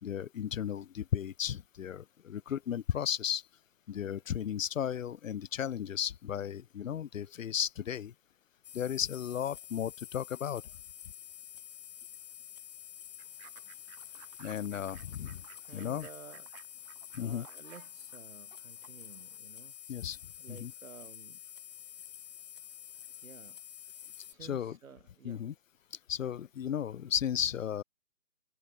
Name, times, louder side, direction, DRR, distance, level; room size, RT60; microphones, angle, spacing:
voice 1, 0.0-3.4 3.9-8.1 8.7-10.6 14.4-15.4 15.7-16.1 17.1-17.5 19.9-20.2 20.5-20.7 24.4-24.8 25.2-25.5 26.1-27.8, left 9 dB, 65° left, 0.6 m, -34 dB
sound 1, 8.6-24.3, left 10 dB, 30° left, 0.9 m, -49 dB
Fowl / Bird, 13.2-19.4, right 28 dB, 25° right, 5.4 m, -58 dB
voice 2, 15.6-16.5 17.2-19.7 20.4-21.4 23.2-23.6 24.2-25.4, right 6 dB, 70° right, 1.6 m, -53 dB
figure-of-eight pair, 140°, 42 cm